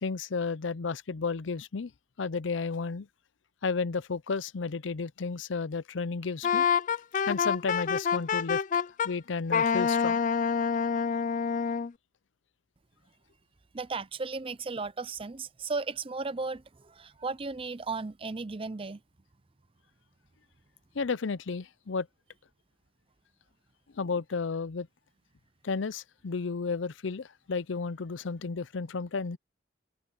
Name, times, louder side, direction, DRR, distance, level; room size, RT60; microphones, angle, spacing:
voice 1, 0.0-1.9 2.2-3.1 3.6-6.7 7.3-8.6 9.0-10.2 20.9-22.1 23.9-24.9 25.6-29.4, left 4 dB, 80° left, 0.6 m, -32 dB
Wind instrument woodwind instrument, 6.4-9.1 9.5-11.9, left 6 dB, 40° left, 0.4 m, -27 dB
voice 2, 13.7-19.0, right 4 dB, 30° right, 0.6 m, -35 dB
open air
head